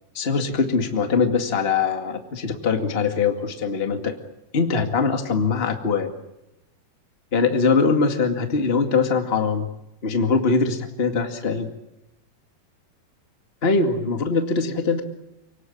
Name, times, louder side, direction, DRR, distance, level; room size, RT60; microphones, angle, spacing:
voice 1, 0.1-4.2 4.5-6.1 7.3-9.7 10.0-11.7 13.6-15.0, left 4 dB, 45° left, 5 dB, 0.7 m, -22 dB
29.0 x 19.0 x 8.7 m, 0.90 s
omnidirectional pair, 5.1 m